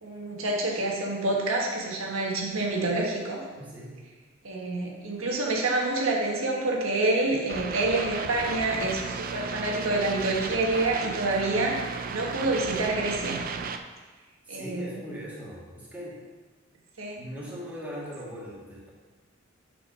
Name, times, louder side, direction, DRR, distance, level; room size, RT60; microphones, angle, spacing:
voice 1, 0.0-3.4 4.4-13.4 14.5-14.9 17.0-17.2, right 2 dB, 90° right, -1 dB, 1.4 m, -27 dB
voice 2, 3.5-4.0 14.4-16.2 17.2-18.9, equal, 10° right, -7 dB, 2.1 m, -39 dB
sound 1, 7.5-13.8, right 5 dB, 45° right, 0.4 m, -34 dB
8.9 x 5.0 x 4.6 m, 1.3 s
head